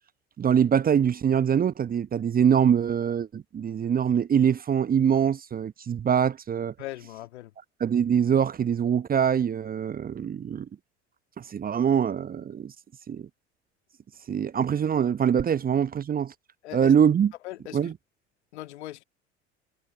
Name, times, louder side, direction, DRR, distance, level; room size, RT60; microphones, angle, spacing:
voice 1, 0.4-6.7 7.8-10.7 11.4-12.7 13.1-13.3 14.3-16.3 16.7-17.3 17.7-17.9, right 8 dB, 25° right, 0.9 m, -23 dB
voice 2, 6.8-7.5 16.6-17.0 17.4-17.9 18.5-19.0, left 16 dB, 65° left, 2.5 m, -39 dB
figure-of-eight pair, 65°, 36 cm